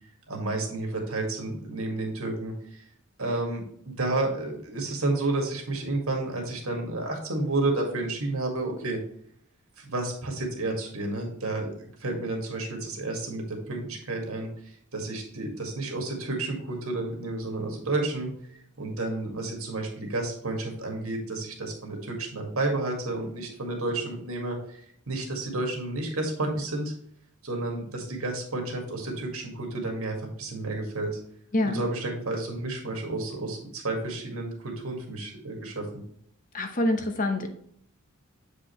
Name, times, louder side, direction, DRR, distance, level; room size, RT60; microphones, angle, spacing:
voice 1, 0.3-2.8 3.2-9.0 9.8-11.7 12.0-18.3 18.8-24.8 25.1-26.9 27.4-31.2 31.6-35.8, right 2 dB, 75° right, 1 dB, 2.0 m, -31 dB
voice 2, 36.5-37.5, left 1 dB, 35° left, 5 dB, 0.9 m, -26 dB
7.8 x 5.0 x 3.1 m, 0.69 s
head